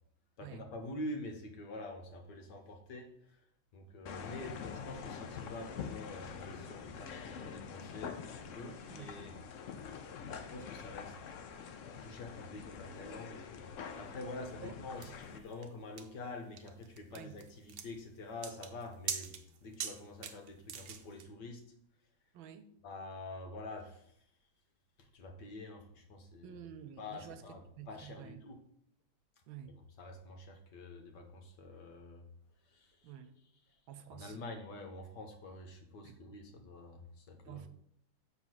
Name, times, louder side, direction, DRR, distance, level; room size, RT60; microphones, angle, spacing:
voice 1, 0.4-3.4 3.7-9.4 10.3-11.2 12.0-21.6 22.8-24.1 25.0-26.6 27.0-28.6 30.0-32.3 32.7-33.1 33.7-33.8 34.1-37.7, left 2 dB, 60° left, 5 dB, 1.6 m, -47 dB
sound 1, 4.1-15.4, left 6 dB, 90° left, 0.6 m, -46 dB
sound 2, 15.0-21.3, right 7 dB, 65° right, 1.2 m, -43 dB
voice 2, 22.3-22.7 26.4-27.4 27.8-28.4 29.5-29.7 33.0-33.3 33.9-34.4 36.0-36.2 37.4-37.7, right 9 dB, 85° right, 10 dB, 1.4 m, -49 dB
7.4 x 3.7 x 6.3 m, 0.71 s
omnidirectional pair, 2.2 m